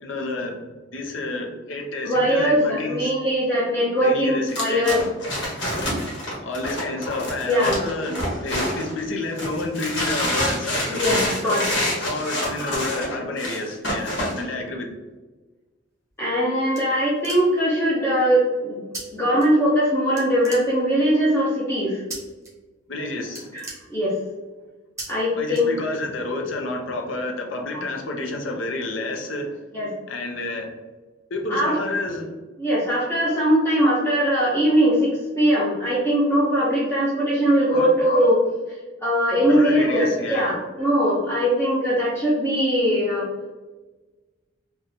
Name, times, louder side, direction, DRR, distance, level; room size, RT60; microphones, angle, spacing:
voice 1, 0.0-0.6 0.9-3.1 4.0-4.9 6.4-11.0 11.4-14.9 22.9-23.5 25.4-29.6 30.1-30.7 31.3-32.3 37.7-37.9 39.4-40.5, left 2 dB, 80° left, 3 dB, 0.6 m, -29 dB
voice 2, 2.0-5.0 7.5-7.8 10.9-11.6 16.2-18.8 19.1-22.0 23.5-23.6 23.9-24.2 25.1-25.7 29.7-29.9 31.5-31.8 32.6-38.4 38.7-43.3, equal, 15° left, -8 dB, 0.7 m, -21 dB
sound 1, 4.5-9.0 9.4-14.4, equal, 65° left, 1.2 m, -27 dB
sound 2, 16.1-17.8 18.9-19.0 19.4-19.9 20.2-21.1 22.1-22.5 22.8-23.0 23.2-24.4 25.0-25.1 25.5-26.2, right 2 dB, 15° right, 1.1 m, -38 dB
3.8 x 2.3 x 2.7 m, 1.2 s
head